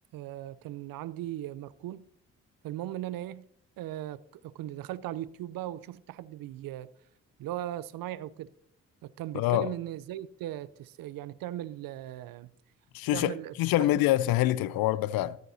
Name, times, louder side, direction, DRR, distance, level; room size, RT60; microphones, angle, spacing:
voice 1, 0.1-2.1 2.6-3.5 3.8-6.9 7.4-8.5 9.0-12.5 13.1-14.0, right 13 dB, 60° right, 0.6 m, -38 dB
voice 2, 9.3-9.7 12.9-15.4, left 15 dB, 65° left, 0.6 m, -26 dB
13.5 x 11.5 x 2.7 m
hypercardioid pair, 45°, 38 cm